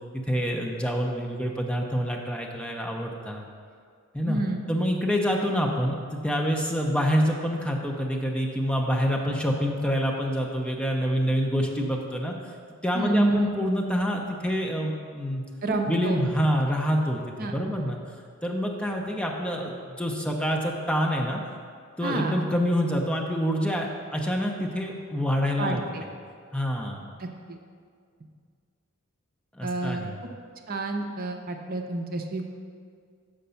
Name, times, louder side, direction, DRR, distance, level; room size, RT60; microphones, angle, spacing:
voice 1, 0.3-3.4 4.1-4.4 4.7-12.5 12.8-15.4 15.9-18.0 18.4-21.4 22.0-25.8 26.5-27.1 29.5-30.1, equal, 5° left, 0 dB, 0.6 m, -27 dB
voice 2, 4.3-4.6 12.9-13.5 15.6-16.3 17.4-17.5 22.0-22.3 25.6-26.0 27.2-27.6 29.6-30.0 30.7-32.5, right 2 dB, 45° right, 3 dB, 0.6 m, -29 dB
6.7 x 5.1 x 6.8 m, 2.1 s
head